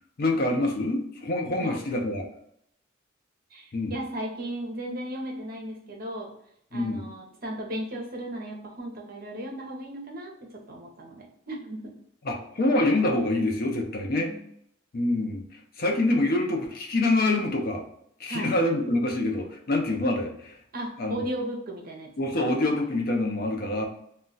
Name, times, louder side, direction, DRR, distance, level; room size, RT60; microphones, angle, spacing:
voice 1, 0.2-2.2 3.7-4.0 6.7-7.1 12.2-14.3 14.9-15.4 15.8-17.8 18.2-20.6 21.0-21.2 22.2-23.9, left 2 dB, 45° left, 2 dB, 0.5 m, -26 dB
voice 2, 3.5-6.3 6.7-11.9 14.1-14.4 18.3-18.6 20.7-22.6, right 1 dB, 45° right, 0 dB, 0.7 m, -36 dB
2.3 x 2.2 x 3.8 m, 0.71 s
head